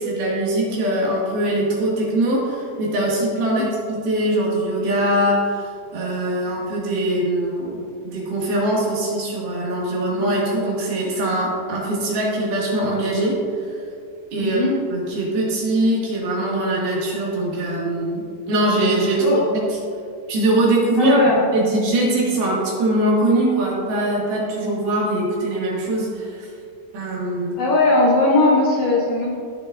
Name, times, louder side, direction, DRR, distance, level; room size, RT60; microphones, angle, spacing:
voice 1, 0.0-13.4 14.3-14.6 14.9-19.6 20.3-21.2 21.5-26.5 26.9-27.6, right 1 dB, 75° right, -5 dB, 4.1 m, -22 dB
voice 2, 14.4-14.7 19.2-19.4 21.0-21.4 27.6-29.3, left 2 dB, 60° left, -5 dB, 2.1 m, -18 dB
15.5 x 7.5 x 2.7 m, 2.4 s
omnidirectional pair, 4.4 m